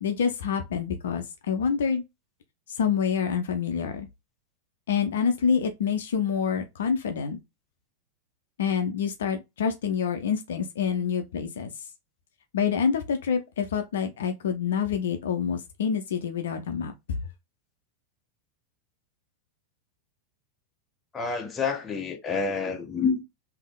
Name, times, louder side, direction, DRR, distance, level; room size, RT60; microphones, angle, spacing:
voice 1, 0.0-2.0 2.8-4.1 4.9-7.4 8.6-11.7 12.5-17.2, left 7 dB, 60° left, 0.6 m, -27 dB
voice 2, 21.1-23.2, left 5 dB, 20° left, 0.9 m, -28 dB
3.6 x 2.8 x 3.6 m
figure-of-eight pair, 90°, 0 cm